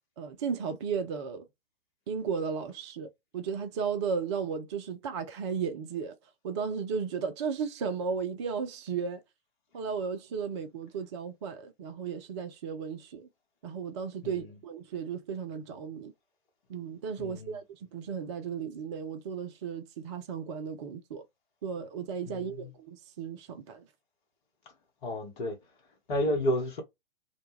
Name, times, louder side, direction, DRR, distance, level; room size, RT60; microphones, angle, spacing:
voice 1, 0.2-1.5 2.1-6.2 6.4-9.2 9.7-13.3 13.6-16.1 16.7-17.6 17.9-21.2 21.6-23.8, right 6 dB, 30° right, 0.4 m, -35 dB
voice 2, 17.2-17.6 22.3-22.7 25.0-25.6 26.1-26.8, equal, 55° left, 1.0 m, -31 dB
2.2 x 2.2 x 3.0 m
figure-of-eight pair, 110°, 30 cm